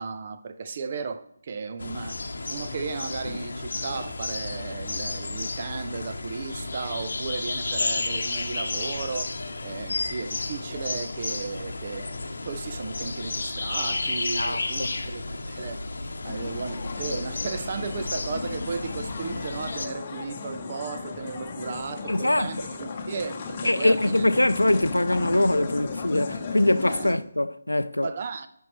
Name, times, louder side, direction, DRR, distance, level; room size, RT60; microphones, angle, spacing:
voice 1, 0.0-2.2 2.5-9.3 9.6-15.8 16.2-24.2 26.9-27.2 28.0-28.5, right 5 dB, 40° right, 0.6 m, -35 dB
sound 1, 1.8-19.9, left 3 dB, 60° left, 0.9 m, -32 dB
voice 2, 14.4-14.9 22.1-22.5 23.6-28.1, left 1 dB, 80° left, 0.5 m, -23 dB
sound 2, 16.2-27.1, left 4 dB, 30° left, 0.9 m, -35 dB
14.0 x 5.4 x 3.1 m
figure-of-eight pair, 150°, 0 cm